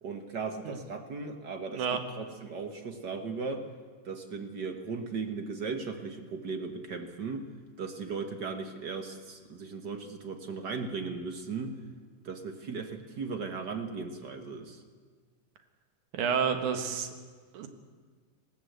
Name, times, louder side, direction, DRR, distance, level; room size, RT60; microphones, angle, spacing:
voice 1, 0.0-1.8 2.2-3.7 4.0-7.5 7.8-11.8 12.2-14.8, right 4 dB, 50° right, 6 dB, 1.3 m, -37 dB
voice 2, 16.1-17.1 17.5-17.7, right 7 dB, 80° right, 7 dB, 2.9 m, -29 dB
20.0 x 16.5 x 8.0 m, 1.6 s
omnidirectional pair, 3.4 m